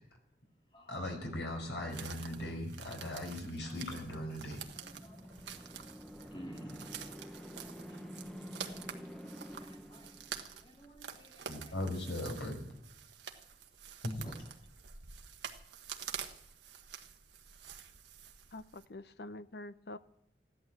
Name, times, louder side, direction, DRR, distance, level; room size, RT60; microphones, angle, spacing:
voice 1, 0.9-4.6 11.5-12.6 14.0-14.2, left 1 dB, 85° left, 3 dB, 5.2 m, -38 dB
sound 1, 1.9-18.8, right 7 dB, 80° right, 1.4 m, -48 dB
voice 2, 3.6-3.9 4.7-5.3 5.6-8.2 8.6-10.1 10.5-11.7 14.2-14.3, equal, 30° left, 0 dB, 3.6 m, -55 dB
sound 2, 4.1-10.8, equal, 5° left, 1.0 m, -49 dB
voice 3, 18.5-20.0, left 2 dB, 65° left, 13 dB, 0.7 m, -46 dB
15.0 x 11.5 x 7.7 m, 0.77 s
head